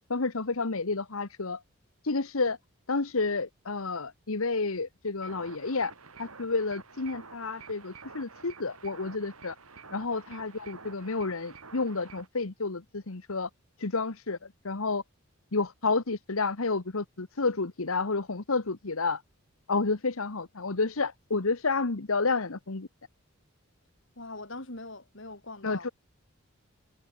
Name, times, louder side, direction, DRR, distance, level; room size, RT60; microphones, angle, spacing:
voice 1, 0.1-1.6 2.0-2.6 2.9-5.9 6.2-9.5 9.9-13.5 13.8-14.4 14.6-15.0 15.5-19.2 19.7-22.9 25.6-25.9, left 3 dB, 75° left, 1.2 m, -30 dB
sound 1, 5.2-12.3, right 4 dB, 85° right, 4.9 m, -49 dB
voice 2, 24.2-25.9, left 2 dB, 60° left, 3.6 m, -42 dB
head